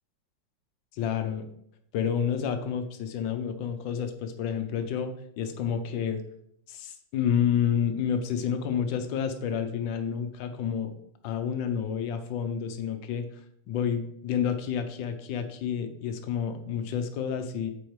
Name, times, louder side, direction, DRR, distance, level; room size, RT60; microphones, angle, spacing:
voice 1, 0.9-1.5 1.9-6.2 6.7-10.9 11.2-13.2 13.7-17.7, left 8 dB, 75° left, 7 dB, 1.4 m, -29 dB
8.0 x 4.4 x 3.1 m, 0.72 s
omnidirectional pair, 2.1 m